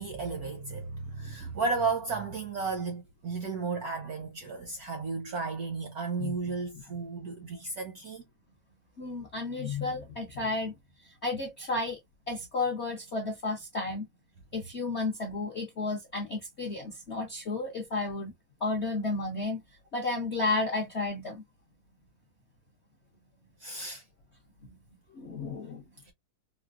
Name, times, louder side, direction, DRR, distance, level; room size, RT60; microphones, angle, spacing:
voice 1, 0.0-8.2 23.6-24.0 26.0-26.1, right 4 dB, 70° right, 0.9 m, -34 dB
voice 2, 9.0-10.7 11.2-12.0 12.3-14.1 14.5-18.3 18.6-19.6 19.9-21.4 25.1-25.8, left 3 dB, 60° left, 0.6 m, -32 dB
4.3 x 2.1 x 2.3 m
omnidirectional pair, 2.3 m